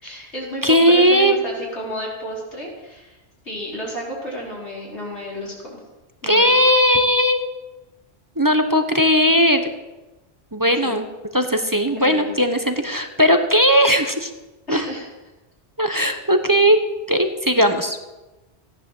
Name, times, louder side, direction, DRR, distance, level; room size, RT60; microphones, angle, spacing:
voice 1, 0.0-3.2 3.4-5.8 6.2-6.6 10.8-11.0 12.0-12.3 14.7-15.1 15.9-16.2, equal, 70° left, -4 dB, 5.4 m, -32 dB
voice 2, 0.6-1.4 6.2-7.4 8.4-9.7 10.5-11.0 11.3-14.3 14.7-14.8 15.8-16.8 17.1-18.0, equal, 20° right, 6 dB, 1.1 m, -17 dB
16.0 x 10.5 x 7.7 m, 1.1 s
omnidirectional pair, 1.2 m